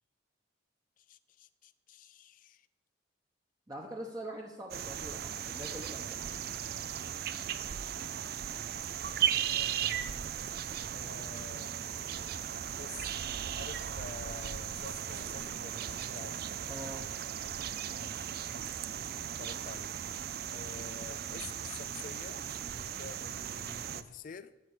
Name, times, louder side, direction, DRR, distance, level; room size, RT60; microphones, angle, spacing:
voice 1, 1.0-2.7 9.5-10.2 10.9-11.7 12.7-16.4 18.0-18.3 19.2-19.9 20.5-24.5, left 5 dB, 45° left, 15 dB, 0.4 m, -49 dB
voice 2, 3.7-6.2 16.7-17.1, right 1 dB, 20° right, -1 dB, 0.9 m, -43 dB
sound 1, 4.7-24.0, right 9 dB, 50° right, 0.4 m, -37 dB
13.0 x 5.8 x 6.6 m, 1.0 s
head